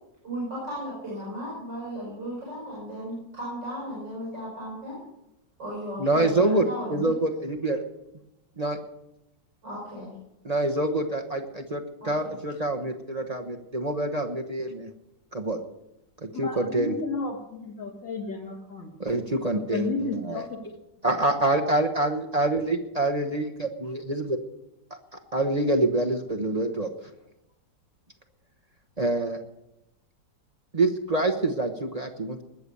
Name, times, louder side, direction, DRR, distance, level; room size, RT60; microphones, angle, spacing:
voice 1, 0.2-5.0 5.6-7.1 9.6-10.1 12.0-12.3, equal, 70° right, -6 dB, 7.3 m, -35 dB
voice 2, 6.0-7.8 8.6-8.8 10.4-14.9 15.3-15.6 16.2-16.9 19.0-20.4 21.0-24.4 25.3-26.9 29.0-29.4 30.7-32.4, right 2 dB, 25° right, 4 dB, 0.9 m, -26 dB
voice 3, 16.3-18.9 19.5-20.6, left 3 dB, 85° left, 3 dB, 3.0 m, -32 dB
20.5 x 6.9 x 8.3 m, 0.87 s
omnidirectional pair, 1.9 m